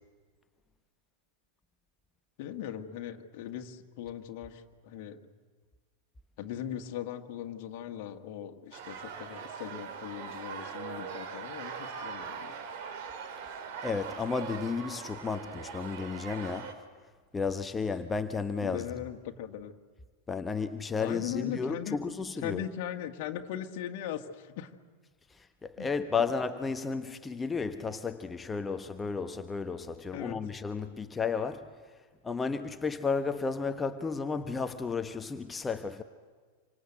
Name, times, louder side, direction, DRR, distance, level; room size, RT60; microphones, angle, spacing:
voice 1, 2.4-5.2 6.4-12.6 18.6-19.7 21.0-24.7 25.8-25.9 30.1-30.4, left 10 dB, 45° left, 1.8 m, -39 dB
sound 1, 8.7-16.7, right 6 dB, 50° right, 2.9 m, -41 dB
voice 2, 13.8-16.8 17.3-18.9 20.3-22.6 25.3-31.9 32.2-36.0, left 5 dB, 15° left, 1.1 m, -33 dB
27.0 x 25.5 x 8.1 m
figure-of-eight pair, 90°, 0 cm